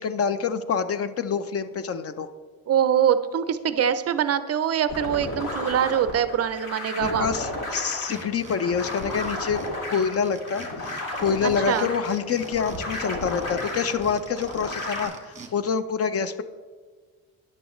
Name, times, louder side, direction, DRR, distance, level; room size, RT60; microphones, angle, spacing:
voice 1, 0.0-2.3 7.0-9.6 9.9-16.4, left 6 dB, 40° left, 12 dB, 0.5 m, -26 dB
voice 2, 2.7-7.3 11.4-11.9, right 9 dB, 45° right, 12 dB, 0.4 m, -24 dB
sound 1, 4.9-15.0, left 1 dB, 60° left, 2.3 m, -33 dB
sound 2, 7.8-15.5, right 4 dB, 20° right, 1.6 m, -45 dB
13.5 x 9.8 x 3.1 m, 1.5 s
cardioid pair, 160°, 36 cm